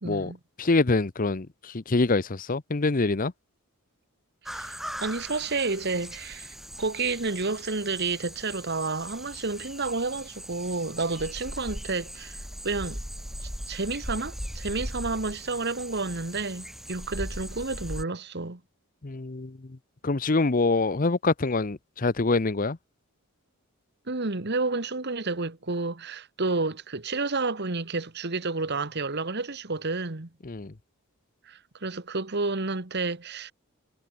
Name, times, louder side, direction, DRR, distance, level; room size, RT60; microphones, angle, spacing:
voice 1, 0.0-0.4 4.5-4.7 5.0-13.0 13.7-18.6 24.1-30.3 31.5-33.5, right 3 dB, 50° right, 1.5 m, -30 dB
voice 2, 0.6-3.3 19.0-19.8 20.0-22.8 30.4-30.7, left 3 dB, 40° left, 0.8 m, -25 dB
sound 1, 4.5-18.0, equal, ahead, 1.7 m, -39 dB
head